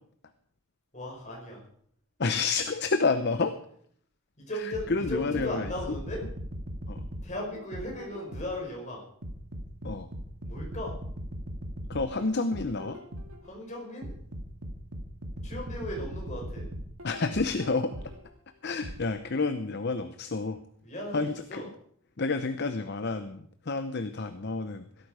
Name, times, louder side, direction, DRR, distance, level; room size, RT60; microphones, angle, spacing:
voice 1, 0.9-1.6 4.4-6.2 7.2-9.0 10.4-10.9 13.4-14.1 15.4-16.6 20.8-21.6, left 1 dB, 35° left, -1 dB, 5.0 m, -37 dB
voice 2, 2.2-3.6 4.5-5.7 6.9-7.0 9.8-10.1 11.9-13.0 17.0-17.9 18.6-20.6 21.1-21.7 22.2-24.9, left 3 dB, 50° left, 9 dB, 0.8 m, -29 dB
sound 1, 4.7-8.7 9.2-13.5 14.0-18.3 18.8-19.0, equal, 70° right, 2.1 m, -39 dB
16.5 x 13.0 x 4.9 m, 0.63 s
head